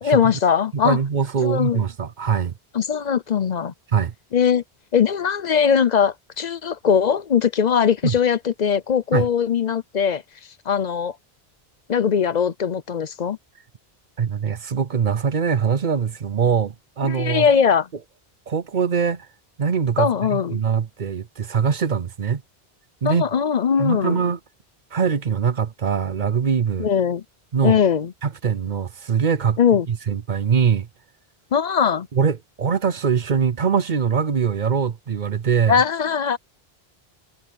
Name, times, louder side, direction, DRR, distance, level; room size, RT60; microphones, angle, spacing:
voice 1, 0.0-1.0 1.4-1.8 2.7-3.7 4.3-4.6 4.9-10.2 10.7-11.1 11.9-13.4 17.0-17.9 20.0-20.6 23.0-24.2 26.8-27.2 27.6-28.1 29.6-29.9 31.5-32.1 35.7-36.4, left 7 dB, 50° left, 0.7 m, -20 dB
voice 2, 0.7-2.5 3.9-4.1 8.0-8.1 9.1-9.3 14.2-17.5 18.5-19.3 19.6-22.4 23.0-23.3 23.8-24.4 24.9-26.9 27.5-27.8 28.2-29.6 29.9-30.9 32.1-35.8, right 6 dB, 50° right, 0.8 m, -22 dB
omnidirectional pair, 1.1 m